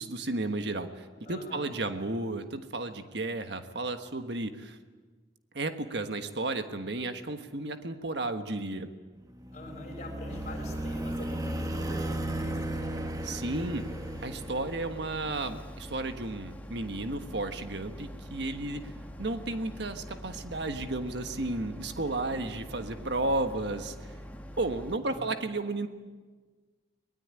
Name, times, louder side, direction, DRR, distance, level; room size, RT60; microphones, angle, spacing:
voice 1, 0.0-4.8 5.5-8.9 13.2-13.8 14.2-18.9 19.2-24.1 24.6-25.9, right 2 dB, 65° right, 7 dB, 1.4 m, -33 dB
voice 2, 1.3-1.7 9.5-13.2 25.0-25.5, left 2 dB, 40° left, 3 dB, 6.0 m, -45 dB
sound 1, 9.3-15.1, right 1 dB, 20° right, 1.1 m, -35 dB
Boat Water vehicle, 10.3-25.0, equal, 10° left, 1.5 m, -44 dB
23.0 x 20.5 x 9.7 m, 1.4 s
head